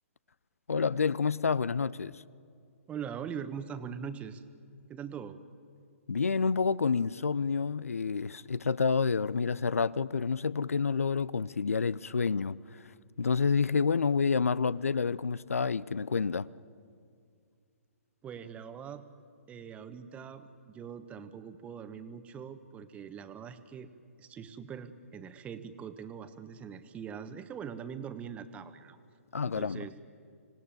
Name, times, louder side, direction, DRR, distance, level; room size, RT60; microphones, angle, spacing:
voice 1, 0.7-2.2 6.1-12.9 13.2-16.5 29.3-29.9, left 5 dB, 75° left, 0.5 m, -29 dB
voice 2, 2.9-4.4 4.9-5.4 18.2-19.0 19.5-23.9 24.2-29.0 29.4-29.9, right 7 dB, 15° right, 1.2 m, -42 dB
26.0 x 18.0 x 9.1 m
figure-of-eight pair, 125°, 8 cm